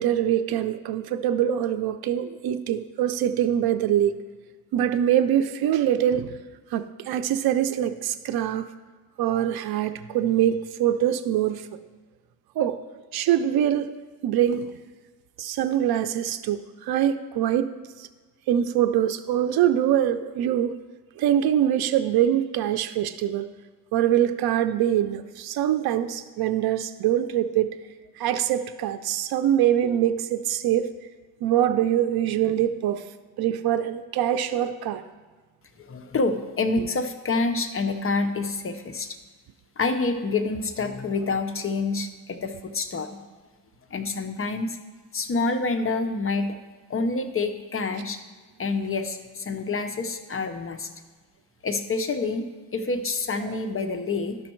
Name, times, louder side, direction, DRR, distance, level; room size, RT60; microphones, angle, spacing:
voice 1, 0.0-4.2 4.7-6.3 6.7-8.7 9.2-11.6 12.6-12.8 13.1-13.9 14.2-14.7 15.4-17.7 18.0-18.1 18.5-20.8 21.2-23.5 23.9-27.8 28.2-30.9 31.4-33.0 33.4-35.0 53.4-53.6, right 11 dB, 85° right, 8 dB, 0.5 m, -24 dB
voice 2, 35.8-39.2 39.8-43.2 43.9-44.8 45.1-46.6 46.9-48.2 48.6-50.9 51.6-52.5 52.7-54.4, left 3 dB, 35° left, 8 dB, 0.6 m, -27 dB
12.0 x 6.2 x 4.4 m, 1.3 s
cardioid pair, 110°, 36 cm